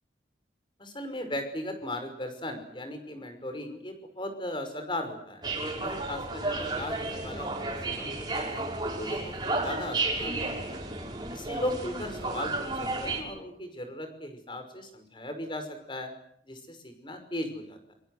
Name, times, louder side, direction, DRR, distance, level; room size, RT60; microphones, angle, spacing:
voice 1, 0.8-5.5 5.8-8.6 9.0-10.8 11.3-16.1 16.4-17.9, left 1 dB, 25° left, 7 dB, 5.7 m, -37 dB
sound 1, 5.4-13.2, right 2 dB, 25° right, 5.9 m, -32 dB
27.0 x 25.5 x 8.1 m, 0.69 s
head